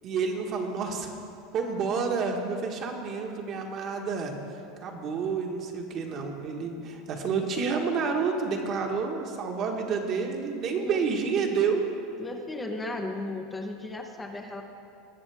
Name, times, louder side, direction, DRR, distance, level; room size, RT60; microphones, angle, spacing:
voice 1, 0.0-1.1 1.5-4.3 4.8-11.8, right 5 dB, 40° right, 2 dB, 1.4 m, -29 dB
voice 2, 12.2-14.6, left 2 dB, 15° left, 3 dB, 0.8 m, -35 dB
19.5 x 7.0 x 3.5 m, 2.5 s
supercardioid pair, 125°, 0 cm